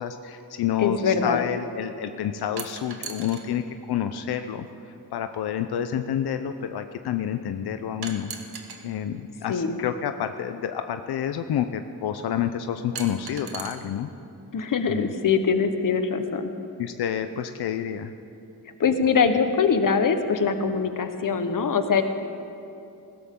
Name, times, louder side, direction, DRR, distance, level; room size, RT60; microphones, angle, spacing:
voice 1, 0.0-4.7 5.1-8.3 8.8-14.1 14.9-15.1 16.8-18.1, left 9 dB, 90° left, 8 dB, 0.6 m, -29 dB
voice 2, 0.8-1.5 9.5-9.8 14.5-16.5 18.8-22.0, left 5 dB, 60° left, 8 dB, 1.1 m, -23 dB
sound 1, 2.6-3.5 4.7-4.8 8.0-8.8 10.3-10.4 13.0-13.7, right 6 dB, 80° right, 1.5 m, -37 dB
19.5 x 17.0 x 3.7 m, 2.7 s
wide cardioid pair, 110°, 37 cm